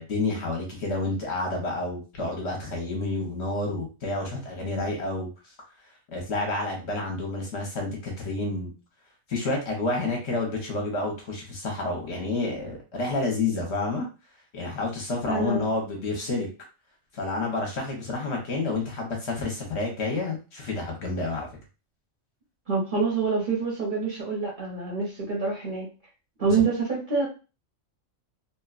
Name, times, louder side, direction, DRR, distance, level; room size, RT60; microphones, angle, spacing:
voice 1, 0.0-5.3 6.1-8.7 9.3-14.0 14.5-16.5 17.1-21.5 26.5-26.6, left 2 dB, 60° left, 1 dB, 0.9 m, -29 dB
voice 2, 15.2-15.7 22.7-25.9 26.4-27.3, right 4 dB, 45° right, -3 dB, 0.8 m, -26 dB
2.8 x 2.2 x 2.3 m, 0.32 s
omnidirectional pair, 1.4 m